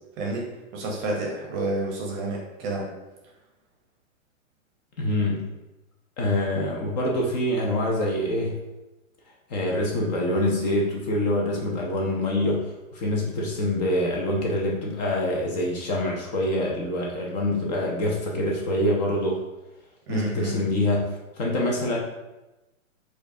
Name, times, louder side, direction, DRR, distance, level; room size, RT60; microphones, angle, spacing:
voice 1, 0.2-2.9 20.1-20.6, right 2 dB, 25° right, -1 dB, 0.7 m, -30 dB
voice 2, 5.0-5.5 6.2-8.6 9.5-19.4 20.1-22.0, left 1 dB, 30° left, -2 dB, 0.6 m, -25 dB
4.5 x 2.4 x 2.6 m, 1.0 s
hypercardioid pair, 125°, 41 cm